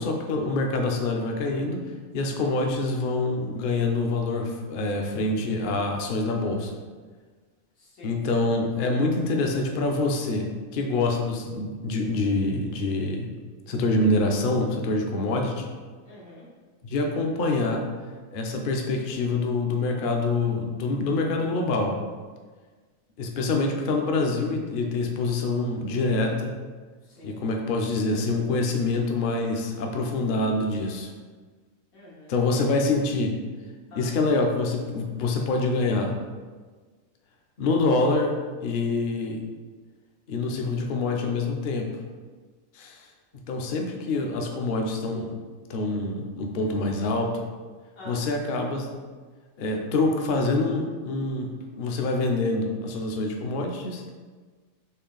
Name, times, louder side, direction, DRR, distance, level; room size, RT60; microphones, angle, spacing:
voice 1, 0.0-1.8 2.1-6.8 8.0-13.3 13.7-15.7 16.8-17.8 18.3-21.9 23.2-26.5 27.2-31.1 32.3-33.3 34.0-36.1 37.6-38.3 38.6-39.4 40.3-41.9 42.7-43.0 43.5-45.3 45.7-47.4 48.0-48.9 49.6-51.5 51.8-54.0, left 2 dB, 55° left, 2 dB, 0.6 m, -26 dB
voice 2, 7.8-8.2 8.9-9.1 16.0-16.5 27.0-27.4 31.9-32.3 33.9-34.2 47.9-48.3, left 1 dB, 85° left, -5 dB, 1.7 m, -46 dB
4.4 x 3.1 x 3.9 m, 1.4 s
omnidirectional pair, 1.4 m